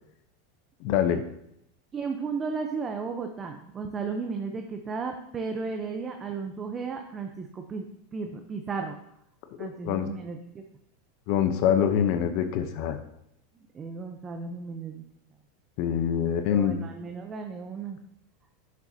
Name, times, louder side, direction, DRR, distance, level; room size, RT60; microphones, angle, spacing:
voice 1, 0.8-1.2 9.6-10.1 11.3-13.0 15.8-16.8, left 8 dB, 55° left, 8 dB, 0.8 m, -25 dB
voice 2, 1.9-7.9 8.1-9.0 9.6-10.6 13.7-15.0 16.2-18.0, right 5 dB, 25° right, 4 dB, 0.8 m, -34 dB
10.5 x 6.9 x 2.8 m, 0.77 s
supercardioid pair, 125°, 0 cm